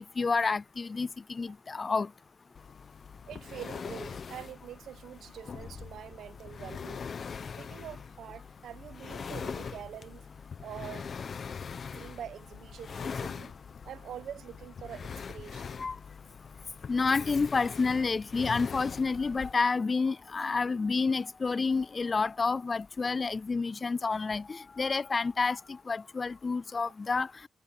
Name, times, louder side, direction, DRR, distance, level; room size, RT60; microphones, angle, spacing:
voice 1, 0.0-2.1 15.8-16.0 16.9-27.3, left 4 dB, 25° left, 0.3 m, -29 dB
sound 1, 2.5-19.5, left 6 dB, 40° left, 0.9 m, -42 dB
voice 2, 3.3-7.1 7.6-10.2 10.6-11.1 12.0-13.5 13.8-15.8, right 10 dB, 80° right, 1.2 m, -45 dB
wide cardioid pair, 170°, 0 cm